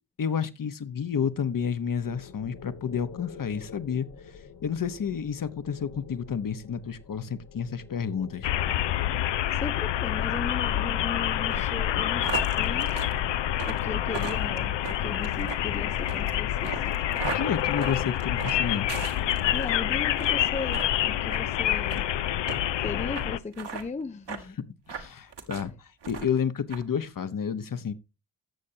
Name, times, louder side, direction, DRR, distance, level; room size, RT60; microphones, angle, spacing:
voice 1, 0.2-8.5 17.2-18.9 24.9-27.9, left 7 dB, 40° left, 1.1 m, -30 dB
sound 1, 2.0-18.0, left 5 dB, 85° left, 2.2 m, -49 dB
sound 2, 8.4-23.4, left 12 dB, 60° left, 0.7 m, -27 dB
voice 2, 9.5-13.0 13.7-17.0 19.5-22.1 22.8-24.6 25.6-25.7, left 4 dB, 15° left, 0.5 m, -37 dB
sound 3, 11.5-19.7 20.1-20.4 20.7-20.9 21.3-21.4 21.9-22.0 22.5-22.6 23.1-23.3 23.5-23.8 24.3-24.4 24.9-25.7 26.0-26.4 26.7-26.8, right 5 dB, 55° right, 1.9 m, -37 dB
15.5 x 6.5 x 2.8 m
supercardioid pair, 50°, 49 cm